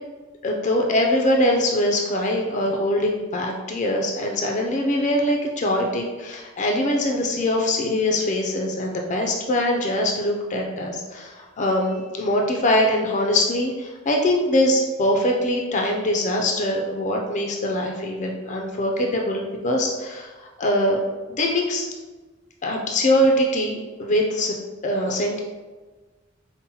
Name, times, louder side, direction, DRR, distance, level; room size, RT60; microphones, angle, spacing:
voice 1, 0.4-20.3 20.6-21.0 21.3-21.9 22.6-24.5 24.8-25.4, left 1 dB, 35° left, 1 dB, 0.4 m, -22 dB
5.3 x 2.0 x 2.8 m, 1.3 s
head